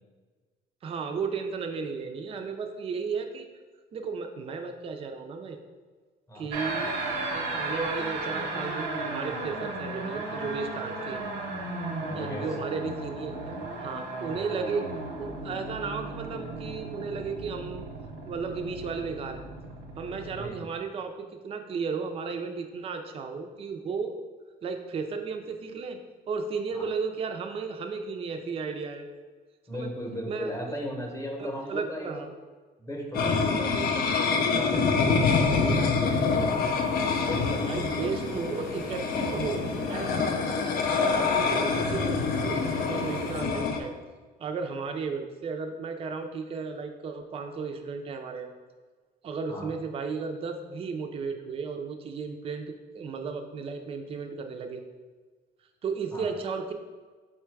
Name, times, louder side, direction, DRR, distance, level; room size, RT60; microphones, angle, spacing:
voice 1, 0.8-3.5 3.9-5.6 6.3-7.0 7.3-11.2 12.1-14.9 15.2-17.8 18.3-19.4 20.0-24.1 24.6-26.0 26.3-29.1 29.7-29.9 30.3-30.5 31.4-32.3 37.6-39.6 39.9-40.4 40.9-43.9 44.4-48.5 49.2-52.7 52.9-54.8 55.8-56.7, right 5 dB, 35° right, 4 dB, 0.4 m, -34 dB
sound 1, 6.5-20.5, right 2 dB, 90° right, 0.8 m, -35 dB
voice 2, 12.0-12.4 14.3-14.4 14.7-14.8 20.3-20.7 26.7-26.9 29.7-32.2 32.8-36.9 37.2-38.0 49.5-49.7 56.1-56.3, equal, 20° left, 0 dB, 0.9 m, -37 dB
sound 2, 33.1-43.8, left 5 dB, 60° left, 0.5 m, -26 dB
sound 3, 36.0-43.4, left 2 dB, 85° left, 0.9 m, -38 dB
4.3 x 2.2 x 4.5 m, 1.4 s
cardioid pair, 110°, 17 cm